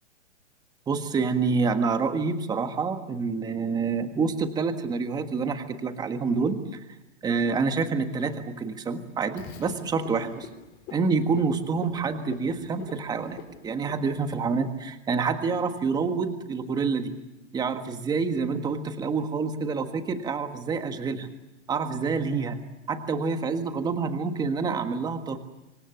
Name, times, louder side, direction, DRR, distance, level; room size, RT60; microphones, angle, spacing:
voice 1, 0.9-6.6 7.2-10.5 10.9-17.1 17.5-21.3 21.7-22.6 22.9-25.4, right 4 dB, 10° right, 8 dB, 1.5 m, -27 dB
Frog, 9.4-14.6, left 8 dB, 25° left, 4.4 m, -46 dB
26.0 x 24.0 x 7.1 m, 0.96 s
hypercardioid pair, 155°, 37 cm